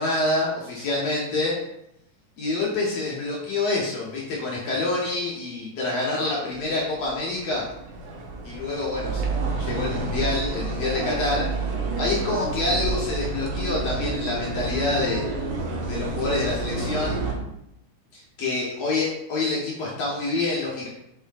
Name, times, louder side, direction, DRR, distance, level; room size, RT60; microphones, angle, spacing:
voice 1, 0.0-1.6 2.4-7.7 8.4-9.2 9.6-11.5 12.0-15.2 15.9-17.2 18.1-20.9, left 2 dB, 60° left, -5 dB, 2.5 m, -27 dB
sound 1, 6.5-17.3, right 3 dB, 90° right, 2.6 m, -29 dB
6.6 x 6.5 x 2.7 m, 0.81 s
omnidirectional pair, 3.5 m